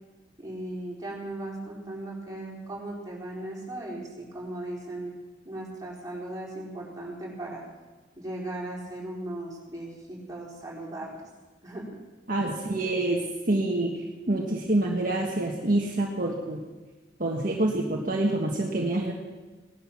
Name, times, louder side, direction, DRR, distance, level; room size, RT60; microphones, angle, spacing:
voice 1, 0.4-5.2 5.4-7.6 8.2-11.2 11.6-11.9, right 1 dB, 20° right, -4 dB, 4.7 m, -37 dB
voice 2, 12.3-13.9 14.3-16.6 17.2-19.1, right 2 dB, 50° right, -1 dB, 1.6 m, -26 dB
18.5 x 11.5 x 6.1 m, 1.3 s
head